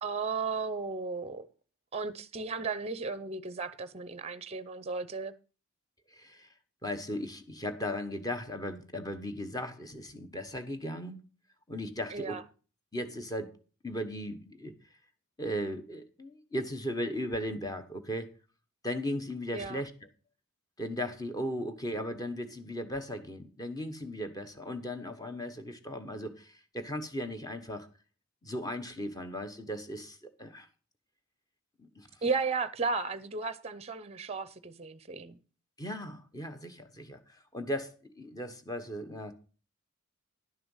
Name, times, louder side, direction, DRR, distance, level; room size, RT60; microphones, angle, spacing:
voice 1, 0.0-1.5 1.9-5.3 12.1-12.4 19.5-19.8 32.2-35.4, right 4 dB, 25° right, 0.6 m, -34 dB
voice 2, 6.1-6.5 6.8-11.2 11.7-12.4 12.9-13.5 13.8-14.7 15.4-18.3 18.8-19.9 20.8-27.9 28.4-30.7 31.8-32.1 35.8-39.3, equal, 15° left, 1.1 m, -37 dB
11.0 x 6.7 x 5.5 m
head